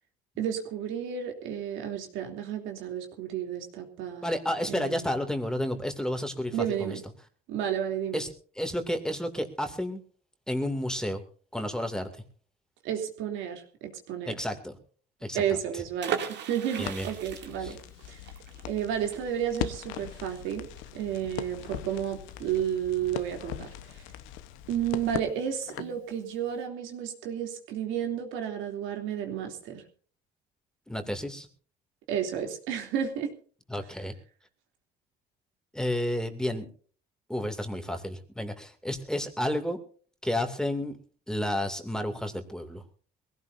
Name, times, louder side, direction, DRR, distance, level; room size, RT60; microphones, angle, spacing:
voice 1, 0.4-4.3 4.7-5.1 6.5-7.0 7.5-8.2 12.8-14.4 15.3-17.8 18.1-18.2 18.7-20.7 20.9-24.0 24.7-29.8 32.1-33.3, right 9 dB, 80° right, 4 dB, 3.0 m, -32 dB
voice 2, 4.2-6.5 6.8-6.9 8.1-8.3 8.6-10.0 10.5-11.2 11.5-12.1 14.3-14.7 15.2-15.8 16.8-17.1 17.6-17.8 30.9-31.5 33.7-34.1 35.7-36.6 37.3-39.8 40.2-41.0 41.3-42.8, left 1 dB, 5° left, 6 dB, 2.5 m, -31 dB
sound 1, 16.0-21.6 21.9-22.0 22.3-22.6, right 8 dB, 65° right, 2.7 m, -37 dB
Crackle, 16.8-26.0, left 12 dB, 85° left, 1.1 m, -40 dB
22.5 x 16.5 x 2.7 m, 0.43 s
cardioid pair, 95°, 20 cm